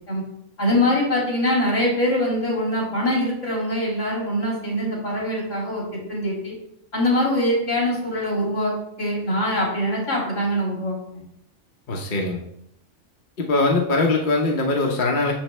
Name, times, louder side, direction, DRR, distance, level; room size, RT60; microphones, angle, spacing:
voice 1, 0.6-6.5 6.9-11.2, left 1 dB, 70° left, -3 dB, 3.0 m, -23 dB
voice 2, 11.9-12.4 13.4-15.3, left 2 dB, 45° left, 0 dB, 0.9 m, -21 dB
7.0 x 6.4 x 3.2 m, 0.75 s
omnidirectional pair, 1.3 m